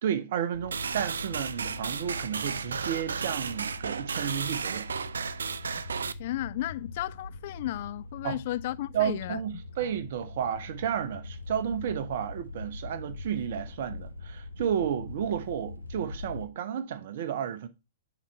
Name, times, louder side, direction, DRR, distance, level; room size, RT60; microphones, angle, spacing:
voice 1, 0.0-4.9 8.2-8.4 8.9-17.7, right 9 dB, 50° right, 0.9 m, -32 dB
sound 1, 0.5-16.4, left 2 dB, 80° left, 0.8 m, -43 dB
sound 2, 0.7-6.1, right 6 dB, 65° right, 0.4 m, -34 dB
voice 2, 6.2-9.4 9.8-9.9, left 15 dB, 45° left, 0.3 m, -34 dB
7.1 x 4.1 x 4.4 m
figure-of-eight pair, 110°, 0 cm